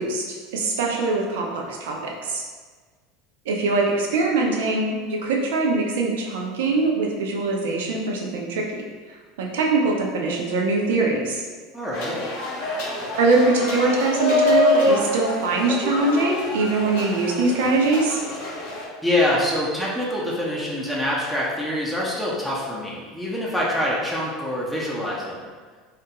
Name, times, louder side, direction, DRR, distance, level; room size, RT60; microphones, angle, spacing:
voice 1, 0.0-2.4 3.5-8.8 9.4-11.4 13.2-18.2, right 3 dB, 75° right, 0 dB, 0.4 m, -22 dB
voice 2, 11.7-12.2 19.0-25.5, left 1 dB, ahead, -6 dB, 0.6 m, -25 dB
sound 1, 11.9-18.8, left 2 dB, 65° left, 0.6 m, -25 dB
2.3 x 2.1 x 2.8 m, 1.5 s
hypercardioid pair, 85°, 0 cm